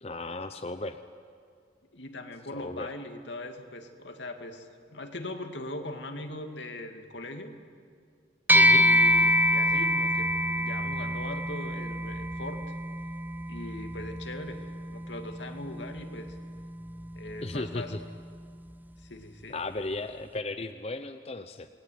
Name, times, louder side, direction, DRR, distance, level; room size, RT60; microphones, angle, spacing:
voice 1, 0.0-1.0 2.6-2.9 8.5-8.9 17.4-18.0 19.5-21.7, left 2 dB, 35° left, 8 dB, 0.8 m, -35 dB
voice 2, 1.9-7.5 8.5-12.6 13.5-14.7 14.9-16.4 17.1-18.0 19.0-19.6, left 2 dB, 80° left, 5 dB, 2.5 m, -40 dB
sound 1, 8.5-18.1, equal, 10° right, 0.6 m, -27 dB
29.0 x 20.5 x 9.5 m, 2.2 s
head